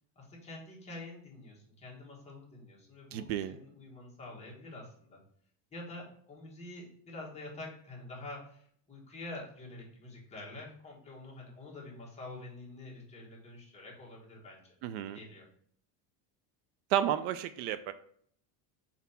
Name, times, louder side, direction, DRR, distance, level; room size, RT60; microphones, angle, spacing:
voice 1, 0.1-5.2 5.7-14.7 15.1-15.5, left 2 dB, 15° left, -4 dB, 1.4 m, -47 dB
voice 2, 3.1-3.6 14.8-15.2 16.9-17.9, right 11 dB, 70° right, 12 dB, 0.5 m, -32 dB
4.3 x 4.1 x 5.6 m, 0.62 s
cardioid pair, 170°, 49 cm